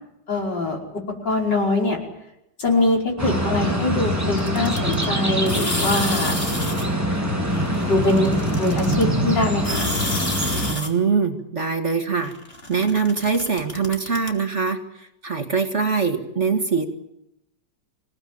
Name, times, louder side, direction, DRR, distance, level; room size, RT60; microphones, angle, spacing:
voice 1, 0.3-2.0 2.6-6.4 7.8-9.9, left 2 dB, 60° left, 1 dB, 5.9 m, -23 dB
sound 1, 3.2-10.7, equal, 10° right, 6.6 m, -23 dB
sound 2, 4.4-5.0 5.4-6.9 7.5-9.0 9.6-10.9 12.2-14.3, left 2 dB, 30° left, 3.6 m, -30 dB
voice 2, 10.7-12.3 12.7-16.9, right 5 dB, 35° right, 5 dB, 2.3 m, -23 dB
27.5 x 18.0 x 8.9 m, 0.83 s
omnidirectional pair, 2.1 m